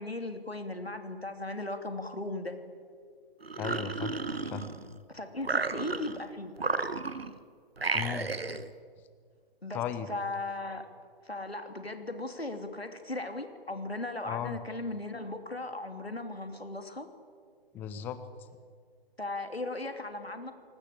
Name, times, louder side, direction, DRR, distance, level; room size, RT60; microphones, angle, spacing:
voice 1, 0.0-2.6 5.1-6.5 9.6-10.9 11.2-17.1 19.2-20.5, left 2 dB, 90° left, 7 dB, 3.0 m, -37 dB
sound 1, 3.4-5.0 5.4-6.2 6.6-7.4 7.8-8.7, right 3 dB, 80° right, 1.5 m, -33 dB
voice 2, 3.6-4.1 4.4-4.6 7.9-8.3 9.7-10.1 14.2-14.6 17.7-18.2, left 9 dB, 5° left, 12 dB, 0.5 m, -35 dB
28.0 x 19.0 x 8.4 m, 2.1 s
figure-of-eight pair, 135°, 30 cm